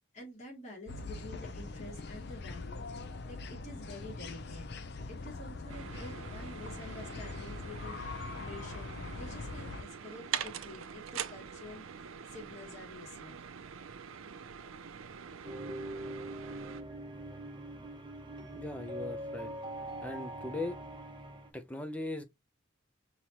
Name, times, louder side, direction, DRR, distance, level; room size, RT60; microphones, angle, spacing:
voice 1, 0.1-2.8 3.3-4.7 5.1-13.4, left 1 dB, 35° left, 2.6 m, -49 dB
sound 1, 0.9-9.8, left 3 dB, 55° left, 0.6 m, -42 dB
sound 2, 5.7-16.8, right 8 dB, 80° right, 0.5 m, -44 dB
sound 3, 15.4-21.5, right 1 dB, 25° right, 0.8 m, -42 dB
voice 2, 18.5-19.5 20.0-20.8 21.5-22.2, left 2 dB, 5° left, 0.5 m, -39 dB
5.4 x 2.9 x 2.9 m
head